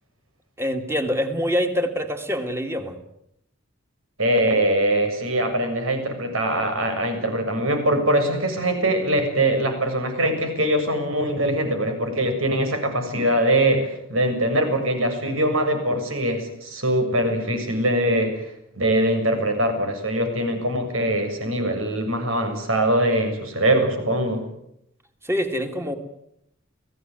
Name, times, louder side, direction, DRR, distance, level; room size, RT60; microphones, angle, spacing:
voice 1, 0.6-3.0 25.2-26.0, equal, 10° right, 5 dB, 2.6 m, -25 dB
voice 2, 4.2-24.4, right 1 dB, 85° right, 6 dB, 7.2 m, -22 dB
30.0 x 17.0 x 9.6 m, 0.78 s
head